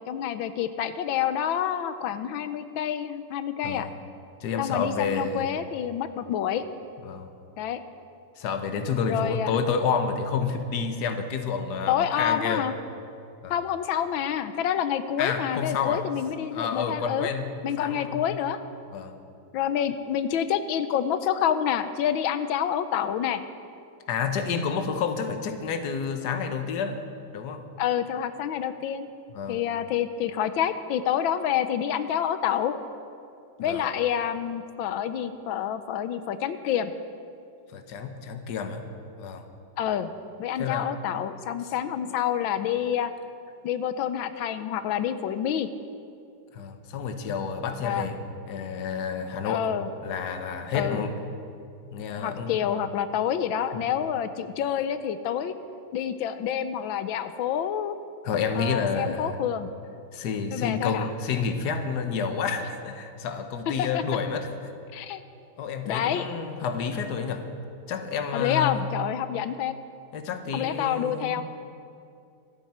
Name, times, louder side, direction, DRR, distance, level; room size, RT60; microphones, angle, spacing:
voice 1, 0.1-3.9 4.6-6.6 7.6-7.8 9.1-9.6 11.9-12.7 13.5-17.3 17.6-18.6 19.5-23.4 27.8-29.1 29.5-32.8 33.6-36.9 39.8-40.1 40.4-43.1 43.6-45.7 47.8-48.1 49.4-49.9 50.7-51.0 52.2-55.5 55.9-57.9 58.5-59.7 60.5-61.1 63.7-64.0 64.9-65.2 65.8-66.3 68.3-69.7 70.5-71.4, left 9 dB, 85° left, 11 dB, 1.5 m, -28 dB
voice 2, 4.4-5.5 7.0-7.3 8.4-12.7 13.4-13.5 15.2-16.1 16.5-17.5 17.8-18.2 18.9-19.2 24.1-27.0 27.3-27.6 29.3-29.6 33.6-33.8 37.7-38.8 39.2-39.4 40.6-40.9 46.5-48.2 48.4-49.7 50.0-51.1 51.9-52.5 53.7-53.8 58.2-59.4 60.1-64.5 65.6-67.5 67.9-68.9 70.1-71.4, left 6 dB, 60° left, 7 dB, 1.5 m, -29 dB
25.0 x 9.8 x 4.3 m, 2.5 s
omnidirectional pair, 2.1 m